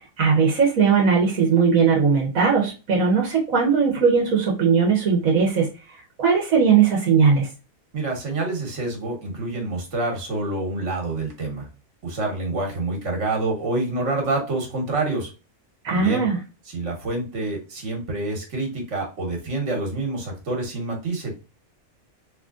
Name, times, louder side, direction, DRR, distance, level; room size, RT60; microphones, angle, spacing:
voice 1, 0.2-5.7 6.2-7.5 15.8-16.4, right 6 dB, 85° right, -1 dB, 1.4 m, -19 dB
voice 2, 7.9-11.7 12.0-15.3 15.9-16.3 16.7-21.6, right 2 dB, 65° right, 1 dB, 1.7 m, -27 dB
3.7 x 3.2 x 2.4 m, 0.30 s
omnidirectional pair, 1.4 m